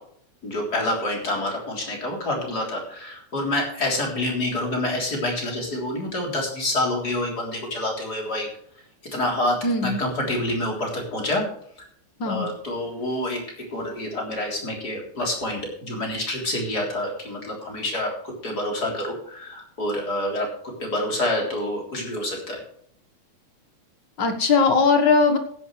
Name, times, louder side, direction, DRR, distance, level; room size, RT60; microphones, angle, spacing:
voice 1, 0.4-8.5 9.1-9.6 9.8-11.4 12.2-13.4 13.7-18.1 18.4-22.6, left 1 dB, 30° left, 0 dB, 4.0 m, -27 dB
voice 2, 9.6-10.0 12.2-12.5 24.2-25.4, left 4 dB, 45° left, 5 dB, 1.7 m, -19 dB
15.0 x 11.0 x 3.2 m, 0.65 s
omnidirectional pair, 3.3 m